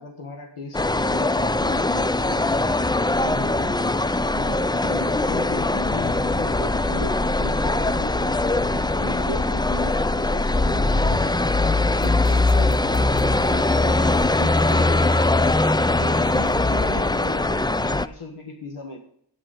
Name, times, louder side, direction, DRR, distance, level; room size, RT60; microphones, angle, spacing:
voice 1, 0.0-3.8 4.3-11.5 12.0-15.3 15.9-19.0, left 2 dB, 85° left, 3 dB, 1.6 m, -37 dB
sound 1, 0.7-18.1, left 2 dB, 10° left, 0.3 m, -21 dB
sound 2, 12.0-17.1, right 2 dB, 25° left, 3.3 m, -40 dB
9.2 x 8.7 x 6.0 m, 0.68 s
wide cardioid pair, 75°, 49 cm